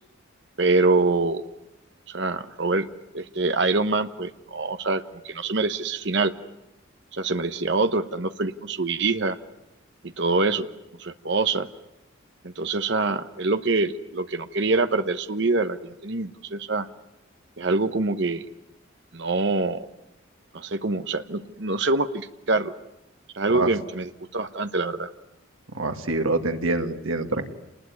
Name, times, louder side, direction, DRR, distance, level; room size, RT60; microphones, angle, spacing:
voice 1, 0.6-1.4 2.1-2.9 3.1-6.3 7.1-9.4 10.0-10.7 11.0-11.7 12.4-16.9 17.6-18.4 19.1-19.9 20.5-22.7 23.3-25.1, right 3 dB, 60° right, 10 dB, 1.1 m, -25 dB
voice 2, 25.7-27.5, right 2 dB, 85° right, 6 dB, 2.2 m, -25 dB
28.5 x 20.0 x 9.6 m, 0.95 s
head